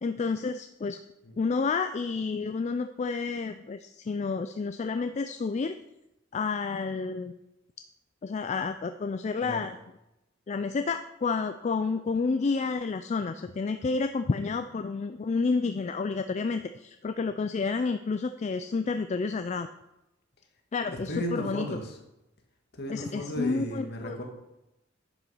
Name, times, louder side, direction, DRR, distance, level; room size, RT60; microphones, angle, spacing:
voice 1, 0.0-1.0 1.4-5.7 6.3-7.3 8.2-9.7 10.5-19.7 20.7-21.7 22.9-24.2, left 4 dB, 35° left, 9 dB, 0.3 m, -30 dB
voice 2, 21.0-22.0 22.7-24.2, equal, 60° left, 2 dB, 1.9 m, -34 dB
10.5 x 5.7 x 5.5 m, 0.92 s
head